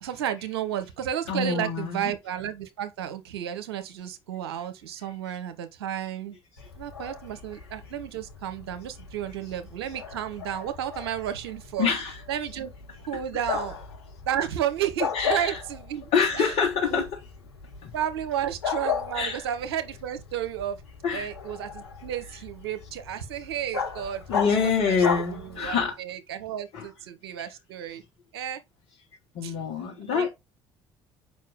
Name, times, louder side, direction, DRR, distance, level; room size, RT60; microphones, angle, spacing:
voice 1, 0.0-6.4 6.8-11.9 12.3-12.7 13.1-13.8 14.2-16.6 16.9-17.0 17.9-20.8 21.1-25.1 25.3-28.0 28.3-28.6 29.4-29.5 30.1-30.3, right 10 dB, 75° right, 1.0 m, -32 dB
voice 2, 1.3-2.0 11.8-12.1 15.1-15.6 16.1-17.1 17.8-17.9 19.1-19.4 21.0-21.3 24.3-25.9 26.7-26.9 29.3-30.3, left 5 dB, 55° left, 1.6 m, -25 dB
Bark, 6.6-25.9, left 6 dB, 80° left, 1.2 m, -36 dB
6.6 x 5.2 x 3.6 m
figure-of-eight pair, 55°, 13 cm